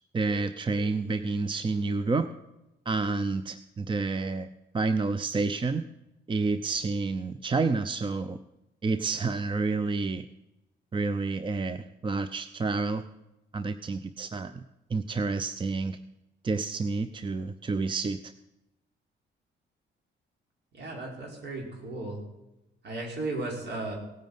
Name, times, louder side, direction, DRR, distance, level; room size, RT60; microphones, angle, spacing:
voice 1, 0.1-2.3 2.9-4.5 4.7-5.8 6.3-8.4 8.8-10.3 10.9-13.0 13.5-14.6 14.9-16.0 16.4-18.3, right 3 dB, 25° right, 12 dB, 0.6 m, -29 dB
voice 2, 20.7-22.2 22.8-23.9, right 2 dB, 60° right, 0 dB, 5.0 m, -35 dB
18.0 x 9.3 x 5.6 m, 0.94 s
cardioid pair, 90°, 20 cm